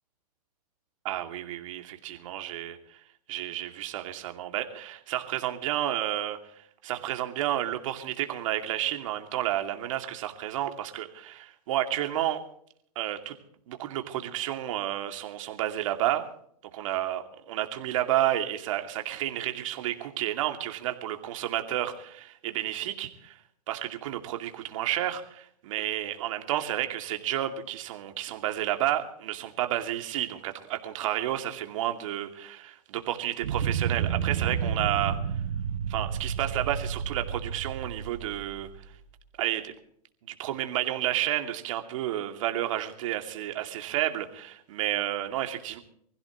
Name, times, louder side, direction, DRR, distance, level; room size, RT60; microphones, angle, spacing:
voice 1, 1.0-3.0 3.3-6.4 6.8-12.4 13.0-13.3 13.7-16.3 16.7-23.4 23.7-35.2 35.9-38.7 39.4-39.7 40.2-45.8, right 13 dB, 50° right, 5 dB, 2.5 m, -31 dB
sound 1, 33.4-39.2, right 7 dB, 70° right, 3.3 m, -31 dB
25.0 x 15.5 x 3.1 m, 0.66 s
hypercardioid pair, 145°, 21 cm